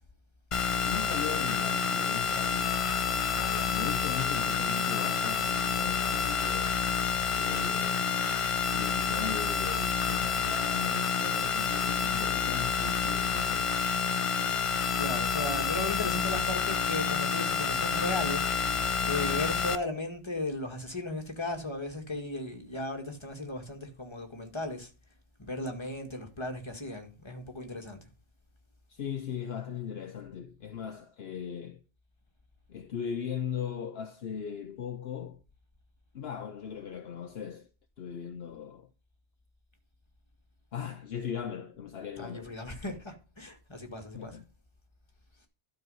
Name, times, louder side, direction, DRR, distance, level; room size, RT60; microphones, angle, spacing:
sound 1, 0.5-19.8, left 6 dB, 40° left, 0.5 m, -29 dB
voice 1, 0.8-2.8 3.7-6.8 7.3-8.2 8.7-13.8 28.9-31.8 32.7-35.4 36.1-37.7 38.0-38.9 40.7-42.6 44.1-44.4, left 8 dB, 65° left, 1.0 m, -38 dB
voice 2, 3.4-3.8 15.0-24.9 25.4-28.0 42.2-44.4, left 1 dB, 25° left, 2.0 m, -36 dB
12.0 x 4.6 x 5.5 m
omnidirectional pair, 1.2 m